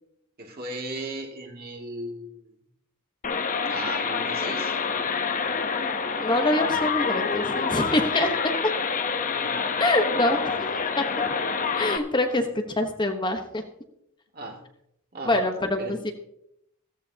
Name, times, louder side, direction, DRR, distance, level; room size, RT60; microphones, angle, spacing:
voice 1, 0.4-2.5 3.7-4.8 9.4-9.6 14.3-14.6 15.1-15.4 15.8-16.0, right 1 dB, 45° right, 1 dB, 2.4 m, -36 dB
sound 1, 3.2-12.0, left 5 dB, 40° left, 0.9 m, -27 dB
voice 2, 6.2-8.3 9.8-10.6 11.0-11.1 11.8-13.6 15.2-16.1, left 1 dB, 20° left, 5 dB, 1.1 m, -25 dB
15.5 x 14.0 x 2.8 m, 0.77 s
head